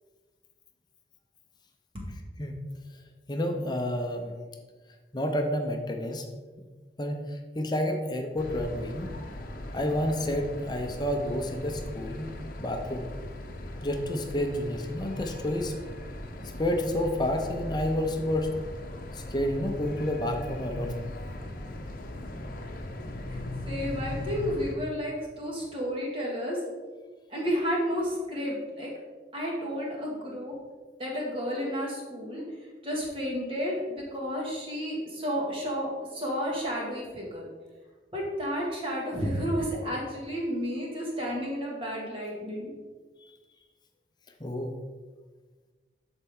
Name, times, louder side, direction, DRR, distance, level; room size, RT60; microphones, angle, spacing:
voice 1, 3.3-4.3 5.1-6.2 7.0-9.1 9.7-12.3 12.6-13.1 13.8-15.7 16.6-18.5 19.1-21.0 43.2-43.4 44.4-44.8, left 1 dB, 25° left, 3 dB, 0.7 m, -30 dB
sound 1, 8.4-24.8, left 1 dB, 50° left, 0.8 m, -39 dB
voice 2, 23.7-26.6 27.3-28.9 29.3-30.5 31.0-32.4 32.8-37.5 38.1-42.7, equal, 30° right, -3 dB, 2.1 m, -31 dB
11.5 x 4.4 x 3.7 m, 1.4 s
head